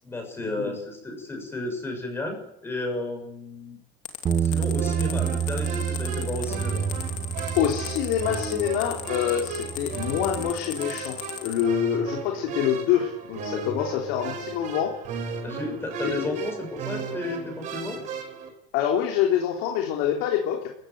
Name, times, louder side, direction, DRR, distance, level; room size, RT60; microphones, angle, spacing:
voice 1, 0.0-3.8 4.4-6.8 15.4-18.0, left 2 dB, 10° left, 3 dB, 6.6 m, -33 dB
sound 1, 4.1-11.6, left 10 dB, 35° left, 3.0 m, -37 dB
Bass guitar, 4.3-10.5, right 9 dB, 20° right, 0.9 m, -30 dB
sound 2, 4.8-18.5, right 5 dB, 35° right, 5.1 m, -34 dB
voice 2, 7.5-14.9 16.0-16.5 18.7-20.7, left 9 dB, 55° left, 1 dB, 3.4 m, -26 dB
28.5 x 15.5 x 9.3 m, 0.85 s
cardioid pair, 170°, 21 cm